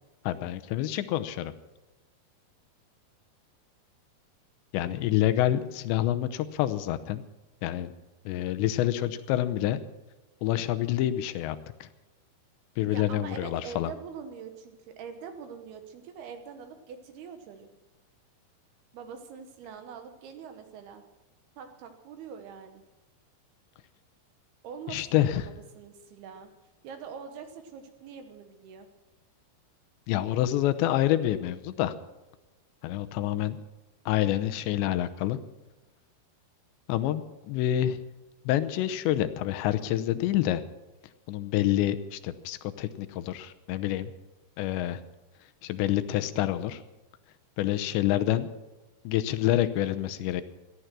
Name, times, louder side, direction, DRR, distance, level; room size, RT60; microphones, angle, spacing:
voice 1, 0.2-1.5 4.7-7.2 7.6-7.9 8.3-9.8 10.4-11.9 12.8-13.9 24.9-25.5 30.1-31.9 32.8-33.6 34.1-35.4 36.9-38.0 38.5-40.6 41.3-44.1 44.6-45.0 45.6-46.8 47.6-48.5 49.0-50.4, left 13 dB, 80° left, 11 dB, 3.0 m, -27 dB
voice 2, 8.4-8.7 12.9-17.7 18.9-21.0 21.6-22.8 24.6-26.5 26.8-28.9, right 6 dB, 70° right, 7 dB, 2.8 m, -44 dB
18.0 x 13.0 x 6.1 m, 1.1 s
omnidirectional pair, 5.2 m